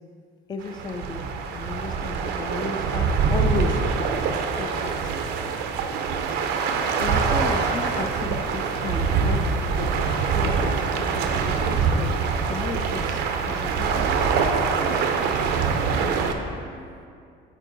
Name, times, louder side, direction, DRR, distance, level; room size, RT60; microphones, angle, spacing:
voice 1, 0.5-1.2 1.5-3.8 4.3-5.1 7.0-14.8, left 4 dB, 25° left, 5 dB, 0.4 m, -34 dB
sound 1, 0.6-16.3, right 5 dB, 85° right, 0.5 m, -24 dB
voice 2, 15.2-17.1, left 2 dB, 85° left, -2 dB, 1.3 m, -48 dB
7.3 x 4.4 x 3.9 m, 2.3 s
cardioid pair, 110°, 17 cm